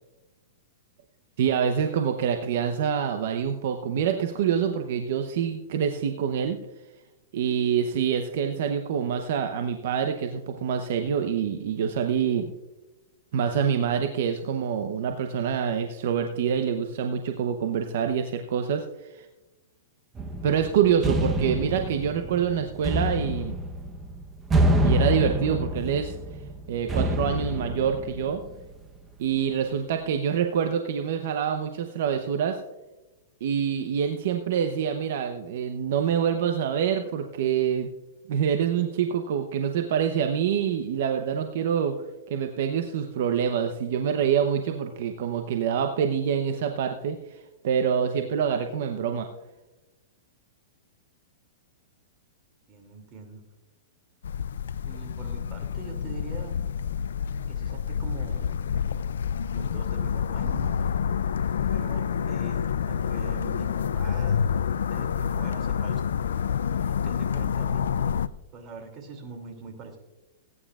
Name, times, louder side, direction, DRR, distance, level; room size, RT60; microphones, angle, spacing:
voice 1, 1.4-6.6 7.3-12.5 13.3-19.3 20.4-23.6 24.8-26.2 26.7-28.4 29.2-32.6 33.4-37.9 38.3-42.0 42.3-49.3, right 8 dB, 65° right, 6 dB, 0.8 m, -26 dB
sound 1, 20.2-28.8, right 1 dB, 15° right, 0.9 m, -27 dB
voice 2, 52.7-53.4 54.8-56.5 57.5-58.5 59.5-61.0 61.7-64.4 64.8-66.0 66.8-67.8 68.5-70.0, right 4 dB, 30° right, 4 dB, 2.7 m, -43 dB
sound 2, 54.2-68.3, left 7 dB, 85° left, 0.4 m, -28 dB
19.5 x 9.7 x 2.4 m, 1.1 s
hypercardioid pair, 140°, 0 cm